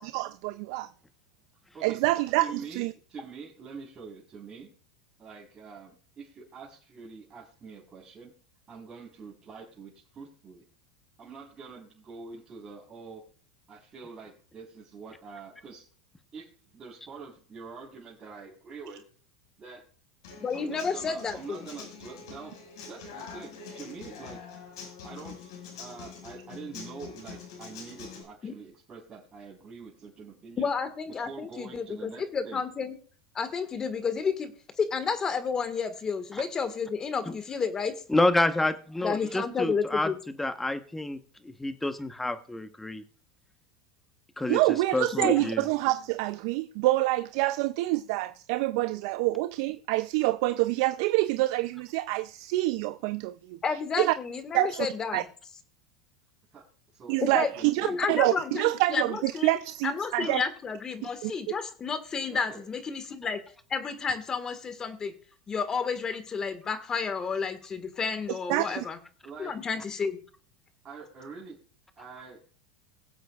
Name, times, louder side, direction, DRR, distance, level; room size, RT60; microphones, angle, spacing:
voice 1, 0.0-0.9 1.8-2.9 44.5-53.6 54.0-54.1 54.5-54.9 55.1-55.2 57.1-60.4 61.2-61.3 68.5-68.8, right 18 dB, 65° right, 0.4 m, -27 dB
voice 2, 2.4-4.7 5.2-8.3 8.7-10.7 11.2-13.2 13.7-15.9 16.3-16.5 16.7-19.0 19.6-19.8 20.5-22.5 22.8-24.5 25.0-30.7 31.3-32.6 39.2-39.4 56.5-56.6 56.9-58.0 60.2-60.4 62.3-62.6 68.5-68.8 69.2-69.7 70.8-71.5 72.0-72.4, right 5 dB, 30° right, 4.1 m, -45 dB
Human voice / Acoustic guitar, 20.2-28.2, left 5 dB, 80° left, 5.6 m, -45 dB
voice 3, 20.4-21.7 28.4-28.5 30.6-32.9 33.4-34.5 34.8-38.0 39.0-40.2 45.2-45.3 53.6-55.3 57.2-57.5 57.8-59.6 59.8-63.4 63.7-65.1 65.5-69.0 69.4-70.2, left 5 dB, 25° left, 1.7 m, -31 dB
voice 4, 38.1-40.1 40.4-41.2 41.4-43.0 44.4-44.6 44.9-45.6, left 2 dB, 10° left, 1.0 m, -28 dB
22.0 x 7.8 x 2.4 m
supercardioid pair, 115°, 3 cm